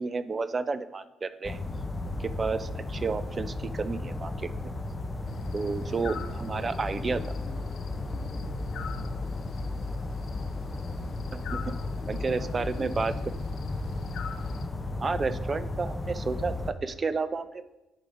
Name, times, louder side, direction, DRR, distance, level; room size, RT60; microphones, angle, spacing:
voice 1, 0.0-1.6 2.0-4.7 5.5-7.2 11.5-11.7 12.1-13.1 15.0-17.6, right 4 dB, 35° right, 13 dB, 0.4 m, -31 dB
sound 1, 1.4-16.7, left 2 dB, 20° left, 0.6 m, -34 dB
sound 2, 5.3-14.7, left 7 dB, 70° left, 0.4 m, -46 dB
voice 2, 5.9-9.7 11.6-13.7, left 2 dB, 45° left, -3 dB, 1.7 m, -49 dB
10.0 x 4.8 x 2.6 m, 1.0 s
cardioid pair, 95°, 0 cm